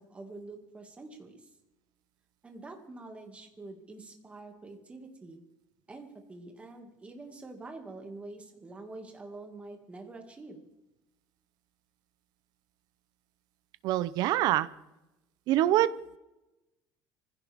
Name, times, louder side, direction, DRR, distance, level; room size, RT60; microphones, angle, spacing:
voice 1, 0.0-1.4 2.4-5.4 5.9-10.6, right 2 dB, 15° right, 3 dB, 2.2 m, -46 dB
voice 2, 13.8-14.7 15.5-15.9, right 14 dB, 55° right, 16 dB, 0.7 m, -25 dB
24.5 x 16.0 x 3.6 m, 0.98 s
cardioid pair, 160°, 8 cm